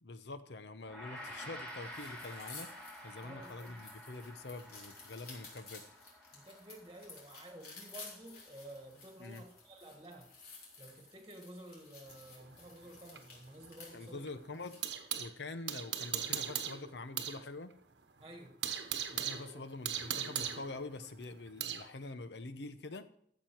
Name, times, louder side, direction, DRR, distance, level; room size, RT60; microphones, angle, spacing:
voice 1, 0.0-5.8 9.2-9.4 13.9-14.8 15.2-17.7 19.1-23.0, left 2 dB, 75° left, 11 dB, 0.9 m, -45 dB
Gong, 0.8-10.2, equal, 5° left, 2.2 m, -51 dB
sound 1, 1.2-14.9, left 4 dB, 60° left, 3.8 m, -54 dB
voice 2, 3.2-3.8 6.3-10.3 10.8-14.2 18.2-18.6 19.5-19.6, right 1 dB, 20° right, 3 dB, 1.4 m, -52 dB
sound 2, 12.1-15.3 15.7-17.4 17.7-17.8 18.2-21.9, right 9 dB, 80° right, 1.1 m, -39 dB
13.5 x 7.5 x 4.6 m, 0.67 s
head